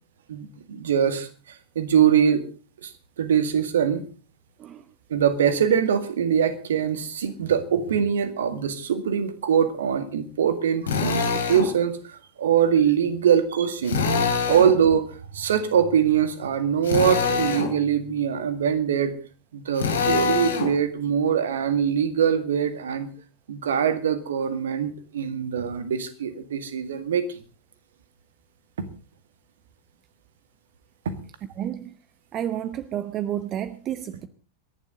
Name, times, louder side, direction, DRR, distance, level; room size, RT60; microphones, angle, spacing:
voice 1, 0.3-2.4 2.8-2.9 3.2-4.0 5.1-14.0 14.5-15.1 15.3-19.1 19.5-23.1 23.5-27.4 28.8-28.9, right 8 dB, 65° right, 11 dB, 2.0 m, -23 dB
Drill, 10.9-11.7 13.8-14.8 16.8-17.7 19.8-20.7, left 5 dB, 65° left, 2.9 m, -24 dB
voice 2, 31.6-31.9 32.3-34.3, right 11 dB, 30° right, 14 dB, 0.9 m, -30 dB
27.0 x 11.5 x 3.8 m, 0.37 s
figure-of-eight pair, 90°, 0 cm